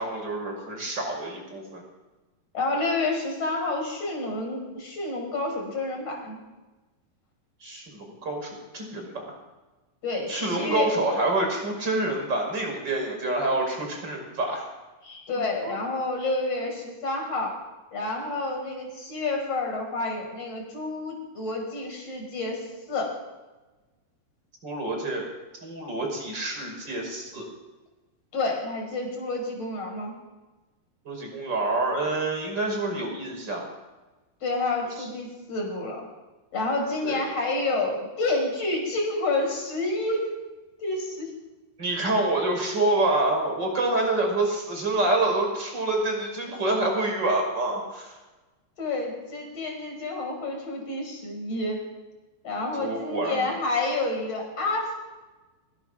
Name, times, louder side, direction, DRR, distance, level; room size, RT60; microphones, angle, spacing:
voice 1, 0.0-1.8 7.6-9.4 10.3-14.6 15.4-15.8 24.6-25.3 25.6-27.4 31.1-33.7 35.0-35.1 37.0-37.2 41.8-48.1 52.8-53.5, right 2 dB, 30° right, 2 dB, 5.9 m, -27 dB
voice 2, 2.5-6.4 10.0-10.9 15.0-17.5 17.9-23.1 28.3-30.1 34.4-36.1 36.5-40.3 40.8-41.3 48.8-51.8 52.4-55.0, left 2 dB, 45° left, 1 dB, 6.2 m, -29 dB
25.0 x 18.0 x 6.2 m, 1.2 s
omnidirectional pair, 4.2 m